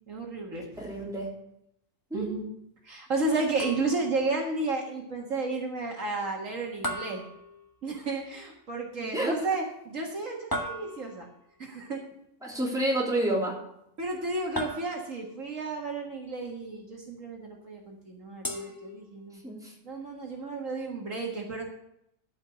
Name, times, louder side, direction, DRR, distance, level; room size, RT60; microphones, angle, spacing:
voice 1, 0.1-1.0 2.1-2.5 2.8-7.2 7.8-11.3 11.6-12.0 14.0-19.4 19.8-21.6, right 3 dB, 60° right, 1 dB, 1.9 m, -32 dB
voice 2, 0.8-1.3 2.1-2.4 9.0-9.5 12.4-13.5 19.4-19.7, right 1 dB, ahead, -3 dB, 3.1 m, -29 dB
sound 1, 3.6-4.2 6.8-8.1 10.5-11.4 14.6-15.4 18.4-19.5, equal, 15° left, 1.3 m, -37 dB
12.5 x 5.5 x 8.2 m, 0.78 s
omnidirectional pair, 1.6 m